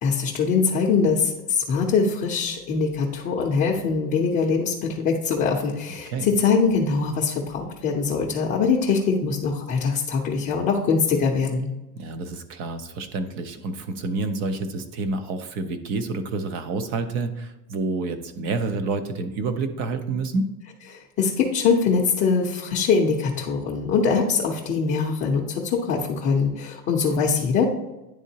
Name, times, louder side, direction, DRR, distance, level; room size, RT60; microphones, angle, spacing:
voice 1, 0.0-11.7 20.9-27.7, left 5 dB, 25° left, -1 dB, 0.6 m, -23 dB
voice 2, 12.0-20.5, right 3 dB, 30° right, 9 dB, 0.4 m, -28 dB
10.5 x 3.6 x 2.7 m, 1.0 s
supercardioid pair, 160°, 47 cm